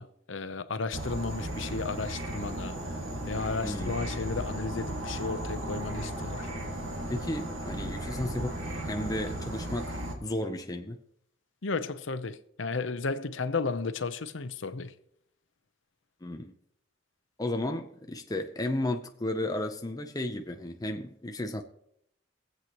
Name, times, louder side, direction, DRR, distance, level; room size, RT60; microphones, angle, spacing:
voice 1, 0.0-2.8 3.3-6.5 11.6-14.9, left 4 dB, 70° left, 0.8 m, -33 dB
Insect / Frog, 0.9-10.1, right 1 dB, 90° right, 2.2 m, -35 dB
voice 2, 3.6-4.0 7.1-8.5 8.8-11.0 16.2-16.5 17.4-21.6, left 1 dB, 20° left, 0.7 m, -33 dB
23.0 x 8.0 x 3.0 m
head